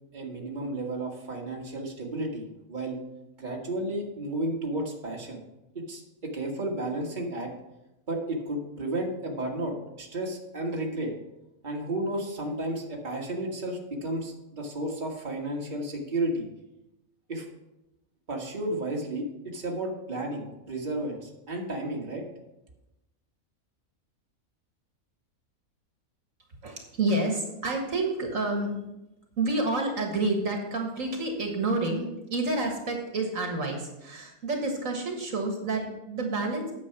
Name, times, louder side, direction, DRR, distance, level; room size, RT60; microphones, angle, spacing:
voice 1, 0.1-3.0 3.4-5.4 5.8-7.5 8.1-11.1 11.6-16.5 17.3-17.5 18.3-22.2, right 1 dB, 35° right, -1 dB, 1.7 m, -32 dB
voice 2, 26.6-28.9 29.4-36.7, right 2 dB, 65° right, 2 dB, 1.9 m, -29 dB
9.7 x 7.0 x 5.9 m, 0.93 s
omnidirectional pair, 1.5 m